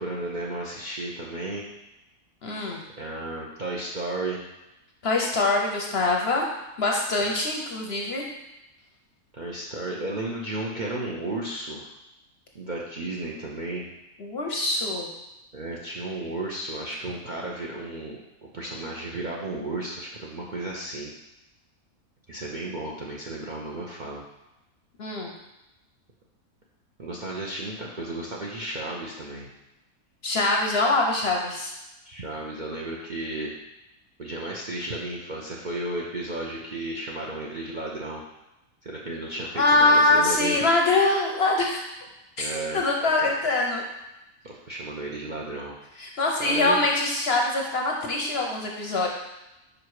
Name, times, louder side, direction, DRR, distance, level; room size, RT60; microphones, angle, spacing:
voice 1, 0.0-1.7 3.0-4.4 7.2-7.3 9.3-11.9 12.5-13.9 15.5-18.2 18.5-21.1 22.3-24.2 27.0-29.5 32.0-33.5 34.2-38.2 38.8-40.6 42.4-42.8 43.2-43.3 44.4-45.8 46.1-46.8, right 2 dB, 45° right, -3 dB, 0.7 m, -33 dB
voice 2, 2.4-2.8 5.0-6.5 6.8-8.2 14.2-15.1 25.0-25.3 30.2-31.7 39.6-41.8 42.4-43.8 46.0-49.1, left 2 dB, 55° left, 0 dB, 0.8 m, -23 dB
5.0 x 4.8 x 4.8 m, 0.95 s
omnidirectional pair, 1.6 m